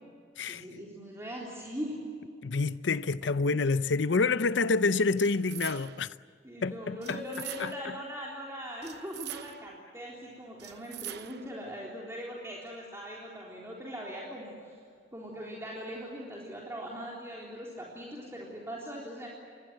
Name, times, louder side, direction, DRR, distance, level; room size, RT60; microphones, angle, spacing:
voice 1, 0.5-2.0 6.4-14.8 15.1-19.3, equal, 15° right, 3.8 m, -40 dB
voice 2, 2.4-6.1 6.6-7.2 7.6-7.7, left 3 dB, 85° left, 0.7 m, -27 dB
sound 1, 5.2-6.1 7.0-8.0 8.8-9.8 10.6-11.6, right 11 dB, 65° right, 0.8 m, -44 dB
28.0 x 21.5 x 7.7 m
head